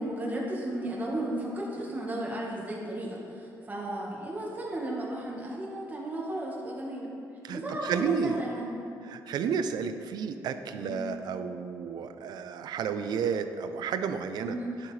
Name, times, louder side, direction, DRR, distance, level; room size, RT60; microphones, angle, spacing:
voice 1, 0.0-7.1 7.5-8.8 10.7-11.0 14.4-14.7, right 1 dB, 25° right, -4 dB, 1.5 m, -34 dB
voice 2, 7.4-8.4 9.0-14.6, right 6 dB, 75° right, 9 dB, 0.5 m, -32 dB
9.9 x 7.5 x 3.3 m, 2.6 s
cardioid pair, 85°, 7 cm